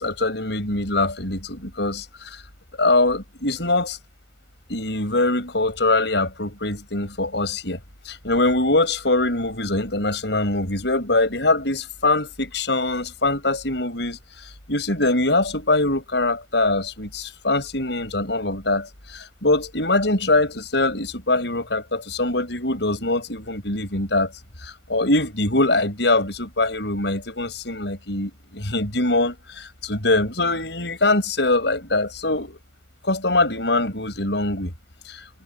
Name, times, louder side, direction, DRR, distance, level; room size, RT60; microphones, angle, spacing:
voice 1, 0.0-2.4 2.8-4.0 4.7-7.8 8.0-14.2 14.7-24.3 24.6-32.6 33.0-34.7 35.1-35.2, left 2 dB, 70° left, 6.7 m, -23 dB
head